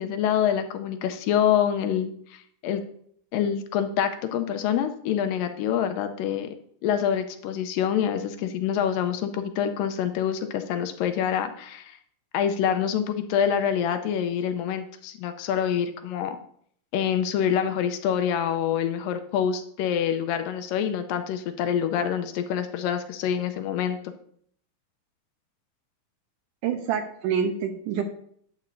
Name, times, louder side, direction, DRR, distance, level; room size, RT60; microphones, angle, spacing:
voice 1, 0.0-2.8 3.3-6.5 6.8-12.0 12.3-16.4 16.9-24.0, left 9 dB, 80° left, 8 dB, 2.3 m, -26 dB
voice 2, 26.6-28.0, right 7 dB, 75° right, 6 dB, 2.1 m, -27 dB
11.5 x 8.6 x 2.6 m, 0.63 s
omnidirectional pair, 4.1 m